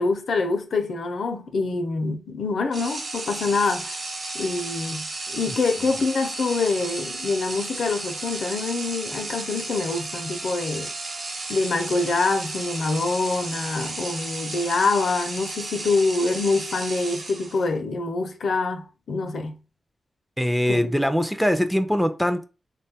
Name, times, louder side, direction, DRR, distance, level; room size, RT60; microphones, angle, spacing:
voice 1, 0.0-3.9 4.3-10.9 11.5-19.6 20.7-20.8, left 3 dB, 80° left, 0.5 m, -25 dB
sound 1, 2.7-17.8, right 2 dB, 75° right, 0.9 m, -33 dB
voice 2, 20.4-22.5, equal, ahead, 0.3 m, -22 dB
3.6 x 2.2 x 2.7 m
wide cardioid pair, 115°, 0 cm